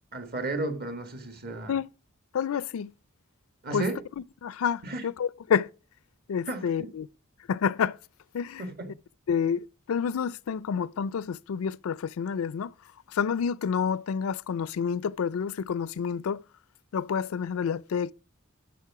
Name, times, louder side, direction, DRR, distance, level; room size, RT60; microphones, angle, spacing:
voice 1, 0.1-1.7 3.6-4.0 4.8-5.0 6.5-6.9 8.6-8.9, right 2 dB, 50° right, 1.7 m, -33 dB
voice 2, 2.3-2.9 3.7-3.9 4.4-5.7 6.3-7.1 7.5-8.0 8.3-8.6 9.3-12.7 13.1-16.4 16.9-18.1, left 7 dB, 75° left, 0.4 m, -29 dB
13.0 x 6.2 x 4.8 m
head